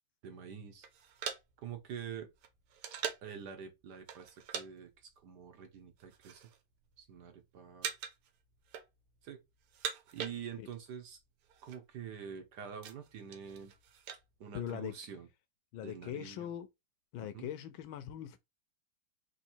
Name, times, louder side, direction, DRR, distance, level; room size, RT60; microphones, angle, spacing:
voice 1, 0.2-0.9 1.6-2.3 3.2-6.4 7.0-7.9 9.2-9.4 10.1-11.2 11.6-13.7 14.4-15.3 15.8-16.5 17.2-17.5, right 7 dB, 60° right, 1.3 m, -46 dB
sound 1, 0.8-3.4 4.1-4.7 4.9-5.2 5.8-6.6 6.9-7.4 7.8-8.3 8.6-9.2 9.6-10.9 11.1-11.2 11.4-11.8 12.3-14.2, right 8 dB, 85° right, 1.7 m, -42 dB
voice 2, 14.5-15.0 15.7-16.7 17.1-18.4, left 10 dB, 75° left, 1.3 m, -41 dB
3.8 x 3.1 x 4.3 m
omnidirectional pair, 2.4 m